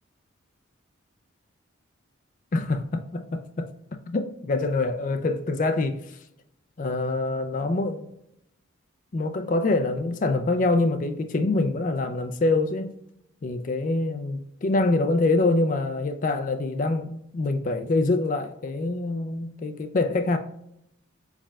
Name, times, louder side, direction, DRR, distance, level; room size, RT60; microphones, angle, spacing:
voice 1, 2.5-3.7 4.1-6.2 6.8-8.1 9.1-13.0 13.4-20.4, left 2 dB, 40° left, 7 dB, 0.4 m, -25 dB
4.7 x 4.3 x 2.3 m, 0.76 s
head